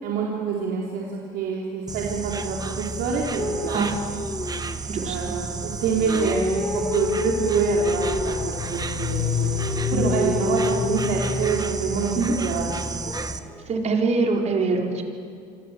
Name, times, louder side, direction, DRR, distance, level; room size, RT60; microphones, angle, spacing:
voice 1, 0.0-3.9 5.0-12.6 12.9-13.3, right 5 dB, 70° right, -3 dB, 4.3 m, -26 dB
Insect, 1.9-13.4, right 4 dB, 20° right, 1.5 m, -32 dB
sound 1, 3.4-5.1 5.9-8.5 9.4-12.0 13.0-13.6, left 2 dB, 10° left, 1.3 m, -29 dB
voice 2, 3.7-4.2 4.9-5.3 9.9-10.2 12.1-12.3 13.7-15.0, right 3 dB, 40° right, 1 dB, 4.8 m, -24 dB
sound 2, 6.7-11.8, left 6 dB, 75° left, 5.2 m, -30 dB
27.0 x 26.5 x 7.8 m, 2.4 s
supercardioid pair, 95°, 17 cm